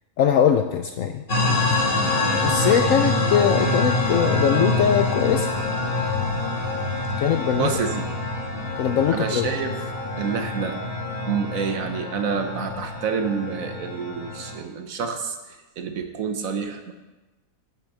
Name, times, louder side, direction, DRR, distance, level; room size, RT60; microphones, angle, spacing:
voice 1, 0.2-1.2 2.4-5.5 7.2-7.7 8.8-9.5, left 8 dB, 70° left, 7 dB, 0.8 m, -21 dB
sound 1, 1.3-14.6, left 2 dB, 35° left, 1.7 m, -25 dB
voice 2, 7.6-8.1 9.1-9.7 10.2-10.8 11.3-16.9, right 6 dB, 60° right, 7 dB, 1.1 m, -28 dB
9.0 x 5.9 x 6.6 m, 1.1 s
omnidirectional pair, 1.8 m